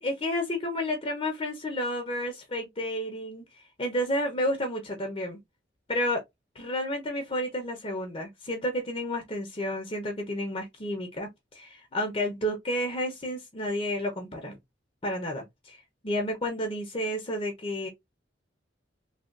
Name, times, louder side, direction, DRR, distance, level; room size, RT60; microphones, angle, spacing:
voice 1, 0.0-3.4 3.8-5.4 5.9-6.2 6.5-14.6 15.0-15.8 16.0-17.9, left 1 dB, 30° left, 0.8 m, -31 dB
3.4 x 2.4 x 2.5 m
head